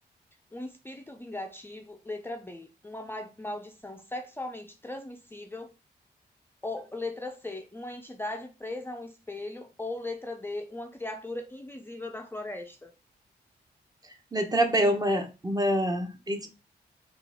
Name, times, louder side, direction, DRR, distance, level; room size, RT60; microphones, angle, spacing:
voice 1, 0.5-5.7 6.6-12.9, left 2 dB, 15° left, 0.5 m, -38 dB
voice 2, 14.3-16.5, equal, 20° right, 0.9 m, -26 dB
4.3 x 2.5 x 3.5 m
cardioid pair, 65°, 17 cm